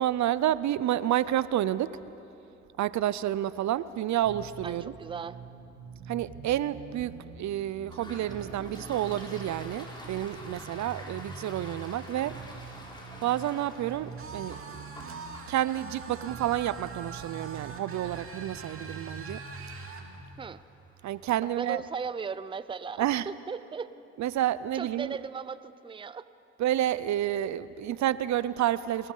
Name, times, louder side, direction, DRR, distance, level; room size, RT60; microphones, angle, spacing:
voice 1, 0.0-2.0 2.8-4.9 6.1-12.4 13.2-14.6 15.5-19.4 21.0-21.8 23.0-23.3 24.2-25.2 26.6-29.1, right 12 dB, 70° right, 17 dB, 0.6 m, -29 dB
sound 1, 4.2-20.2, right 5 dB, 85° right, 3.0 m, -45 dB
voice 2, 4.6-5.4 20.4-20.6 21.4-23.9 24.7-26.3, right 5 dB, 15° right, 15 dB, 0.5 m, -37 dB
Toilet flush, 7.8-21.2, left 1 dB, 15° left, 4.3 m, -49 dB
sound 2, 14.2-20.1, right 5 dB, 45° right, 2.3 m, -44 dB
24.0 x 20.0 x 5.5 m, 2.8 s
cardioid pair, 90°, 30 cm